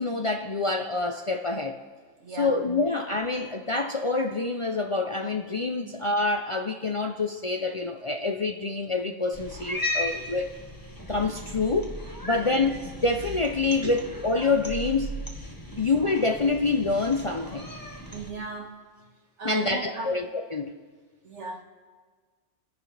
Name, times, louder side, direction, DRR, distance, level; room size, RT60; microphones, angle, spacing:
voice 1, 0.0-1.8 2.3-10.5 11.1-11.9 12.2-15.2 15.8-17.7 19.4-20.7, left 3 dB, 40° left, 4 dB, 0.5 m, -27 dB
voice 2, 2.2-2.6 5.8-5.9 12.3-12.6 13.8-14.0 15.7-15.8 18.0-18.7 19.4-20.2 21.2-21.6, right 2 dB, 75° right, 3 dB, 1.7 m, -36 dB
Cat, 9.3-18.3, left 1 dB, 20° left, 1.5 m, -36 dB
27.0 x 10.5 x 3.3 m, 1.5 s
omnidirectional pair, 1.2 m